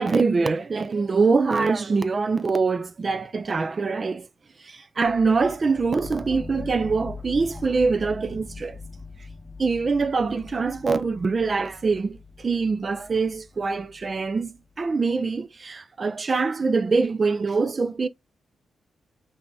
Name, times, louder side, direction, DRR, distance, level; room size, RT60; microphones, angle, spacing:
voice 1, 0.0-4.3 4.6-8.8 9.6-18.1, right 4 dB, 45° right, 0.4 m, -24 dB
sound 1, 5.1-14.9, left 4 dB, 15° left, 0.7 m, -42 dB
5.5 x 2.7 x 3.3 m
cardioid pair, 75°, 0 cm